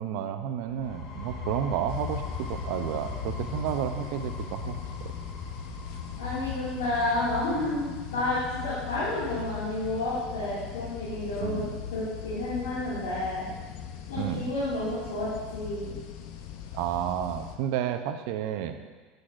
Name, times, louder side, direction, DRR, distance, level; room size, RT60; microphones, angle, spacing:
voice 1, 0.0-5.1 11.4-11.7 14.2-14.5 16.7-18.8, right 10 dB, 70° right, 8 dB, 0.6 m, -31 dB
sound 1, 0.7-8.3, left 4 dB, 50° left, 2.0 m, -39 dB
sound 2, 1.9-17.6, left 9 dB, 65° left, 0.6 m, -40 dB
voice 2, 6.2-13.4 14.1-15.9, left 2 dB, 85° left, -10 dB, 2.2 m, -30 dB
8.4 x 7.7 x 2.5 m, 1.4 s
hypercardioid pair, 95°, 0 cm